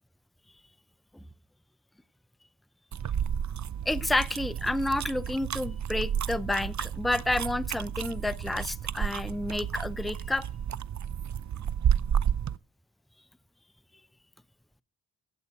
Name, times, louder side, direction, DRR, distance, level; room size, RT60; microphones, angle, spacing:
sound 1, 2.9-12.6, right 8 dB, 45° right, 0.6 m, -31 dB
voice 1, 3.9-10.5, left 2 dB, ahead, 0.6 m, -30 dB
15.0 x 8.4 x 5.4 m
cardioid pair, 45°, 41 cm